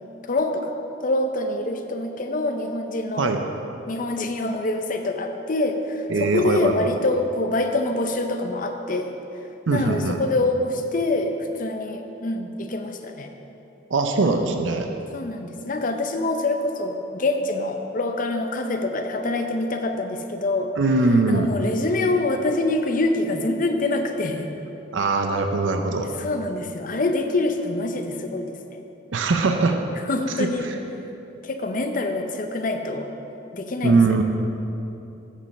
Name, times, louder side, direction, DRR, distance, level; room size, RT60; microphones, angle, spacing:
voice 1, 0.2-0.7 1.0-3.3 3.9-9.1 9.7-13.3 15.1-20.7 21.3-24.5 26.2-28.8 30.0-30.7 31.4-33.1 33.5-34.2, left 2 dB, 45° left, 6 dB, 0.6 m, -25 dB
voice 2, 6.1-6.9 9.7-10.2 13.9-14.9 20.8-21.5 24.9-26.1 29.1-29.8 30.4-30.7 33.8-34.2, right 3 dB, 80° right, 5 dB, 0.6 m, -21 dB
8.5 x 5.4 x 6.5 m, 2.9 s
head